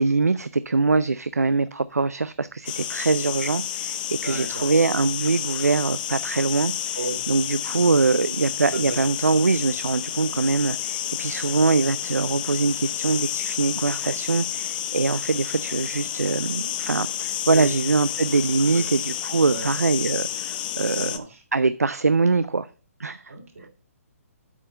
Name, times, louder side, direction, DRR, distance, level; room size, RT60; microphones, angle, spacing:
voice 1, 0.0-7.0 7.3-22.7 23.0-23.3, right 3 dB, 85° right, 0.4 m, -23 dB
sound 1, 2.7-21.2, left 11 dB, 35° left, 0.7 m, -30 dB
voice 2, 4.2-4.7 6.9-7.3 7.7-7.9 8.7-9.0 17.5-17.7 18.6-18.8 19.5-19.6 21.0-21.4 23.3-23.7, right 3 dB, 70° right, 3.2 m, -34 dB
8.2 x 5.5 x 5.1 m
figure-of-eight pair, 130°, 8 cm